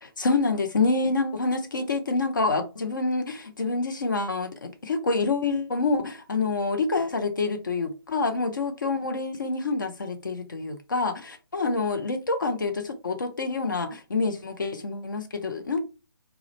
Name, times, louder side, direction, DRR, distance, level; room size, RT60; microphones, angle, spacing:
voice 1, 0.0-15.8, left 3 dB, 55° left, 0.5 m, -27 dB
2.3 x 2.0 x 3.0 m
figure-of-eight pair, 140°, 13 cm